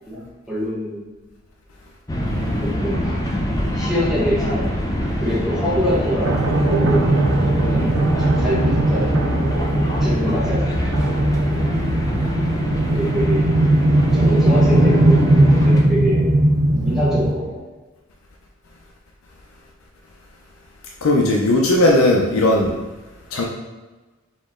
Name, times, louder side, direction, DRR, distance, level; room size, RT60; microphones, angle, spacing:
voice 1, 0.1-1.0 2.5-3.2 3.7-4.7 5.2-7.1 7.7-9.1 10.0-10.9 12.9-13.4 14.1-16.3 16.7-17.6, equal, 5° right, -8 dB, 1.2 m, -25 dB
sound 1, 2.1-15.8, equal, 15° left, 0.5 m, -25 dB
sound 2, 6.2-17.3, right 1 dB, 85° right, 0.7 m, -18 dB
voice 2, 21.0-22.7 23.3-23.4, left 1 dB, 90° left, -2 dB, 0.6 m, -16 dB
4.2 x 3.0 x 3.7 m, 1.2 s
head